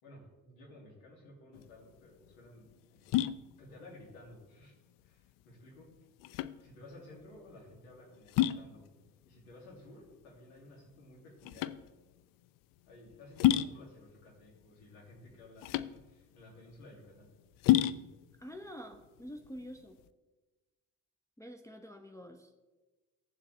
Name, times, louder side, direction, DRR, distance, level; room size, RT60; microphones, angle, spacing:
voice 1, 0.0-3.2 3.6-4.7 5.0-5.9 6.6-8.8 9.2-11.8 12.9-17.3, left 1 dB, 75° left, -2 dB, 2.8 m, -55 dB
sound 1, 1.5-20.1, left 13 dB, 50° left, 0.5 m, -34 dB
voice 2, 18.4-20.0 21.4-22.6, equal, 5° left, 3 dB, 0.8 m, -47 dB
16.0 x 7.4 x 3.4 m, 1.2 s
figure-of-eight pair, 45°, 43 cm